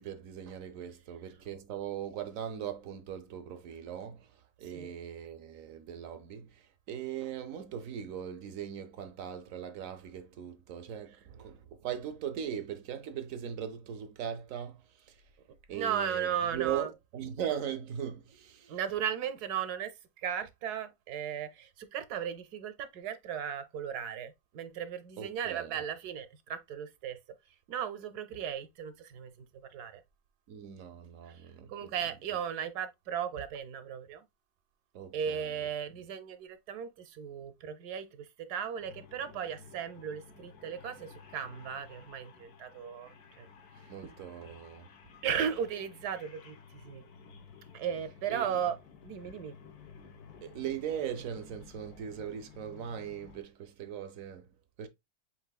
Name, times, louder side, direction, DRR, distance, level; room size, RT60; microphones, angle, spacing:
voice 1, 0.0-15.2 15.7-18.8 25.2-25.8 30.5-31.9 32.3-32.4 34.9-35.7 43.7-44.9 45.4-45.5 48.3-48.6 50.4-54.9, right 9 dB, 65° right, 1.0 m, -40 dB
voice 2, 15.7-16.9 18.7-27.2 27.7-30.0 31.3-31.4 31.7-34.2 35.1-43.5 45.2-47.0 47.7-48.8 49.0-49.5, right 8 dB, 85° right, 1.3 m, -36 dB
sound 1, 38.8-53.4, left 6 dB, 75° left, 1.4 m, -54 dB
7.4 x 2.9 x 2.2 m
omnidirectional pair, 1.7 m